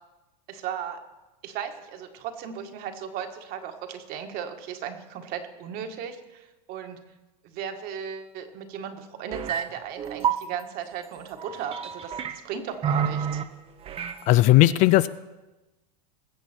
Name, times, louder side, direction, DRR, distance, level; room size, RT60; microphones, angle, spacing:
voice 1, 0.5-1.0 1.4-7.0 7.4-13.4, right 8 dB, 45° right, 5 dB, 1.7 m, -36 dB
sound 1, 9.3-9.6 10.0-10.4 11.4-12.4 12.8-13.4 13.9-14.2, right 8 dB, 25° right, 0.9 m, -28 dB
voice 2, 14.3-15.1, left 16 dB, 40° left, 16 dB, 0.4 m, -17 dB
21.0 x 7.7 x 4.5 m, 1.1 s
hypercardioid pair, 115°, 21 cm